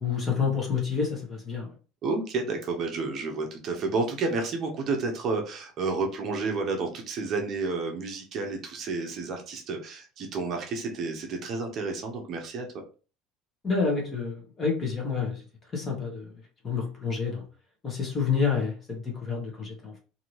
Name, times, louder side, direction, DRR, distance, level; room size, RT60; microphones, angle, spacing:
voice 1, 0.0-1.7 13.6-15.4 15.7-16.3 16.6-17.4 17.8-20.0, left 5 dB, 20° left, 0 dB, 1.0 m, -28 dB
voice 2, 2.0-12.7, right 3 dB, 40° right, 2 dB, 0.7 m, -30 dB
2.7 x 2.6 x 3.0 m, 0.35 s
cardioid pair, 160°, 0 cm